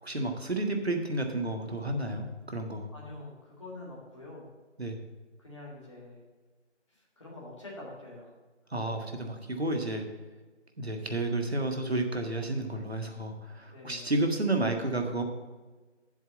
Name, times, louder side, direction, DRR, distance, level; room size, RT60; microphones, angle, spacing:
voice 1, 0.0-2.9 4.8-5.0 8.7-10.0 10.8-15.2, right 2 dB, 60° right, 4 dB, 1.7 m, -31 dB
voice 2, 2.9-4.5 5.4-6.2 6.9-8.3 8.7-8.8 13.7-14.1, left 2 dB, 25° left, -5 dB, 2.3 m, -46 dB
7.9 x 7.3 x 8.0 m, 1.3 s
figure-of-eight pair, 165°, 36 cm